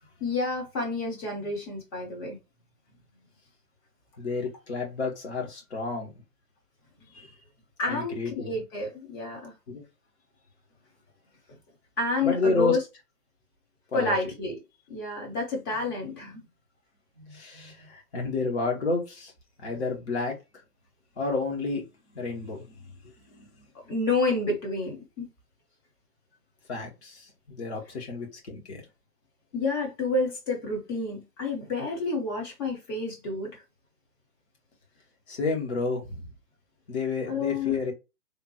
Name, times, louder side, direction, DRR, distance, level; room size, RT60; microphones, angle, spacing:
voice 1, 0.2-2.4 7.8-9.5 12.0-12.8 13.9-14.6 14.9-16.4 17.6-17.7 23.8-25.3 29.5-33.6 37.3-37.8, left 3 dB, 15° left, 0.9 m, -29 dB
voice 2, 4.2-6.1 7.1-7.3 7.9-8.5 9.7-9.8 12.2-12.8 13.9-14.1 17.3-19.3 19.6-20.3 21.2-21.8 22.1-22.7 23.4-23.5 26.7-28.8 35.3-36.3 36.9-37.9, left 3 dB, 45° left, 1.5 m, -30 dB
3.6 x 2.5 x 3.0 m
figure-of-eight pair, 135°, 47 cm